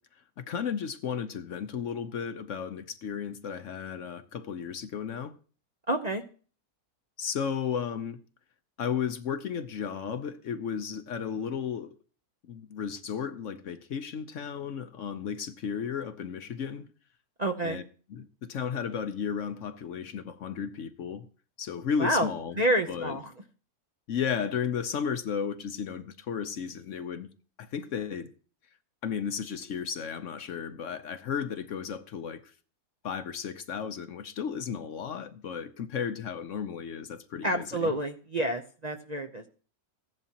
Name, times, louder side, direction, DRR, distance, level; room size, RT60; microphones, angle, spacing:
voice 1, 0.4-5.4 7.2-8.2 8.8-11.9 12.5-16.9 17.6-17.8 18.1-21.3 21.6-22.6 22.9-23.2 24.1-27.3 27.6-28.3 29.0-32.4 33.0-37.9, left 7 dB, 60° left, 1.0 m, -34 dB
voice 2, 5.9-6.2 17.4-17.8 22.0-22.3 22.6-23.3 37.4-39.5, right 1 dB, 35° right, 0.7 m, -28 dB
15.5 x 11.0 x 2.9 m
omnidirectional pair, 1.6 m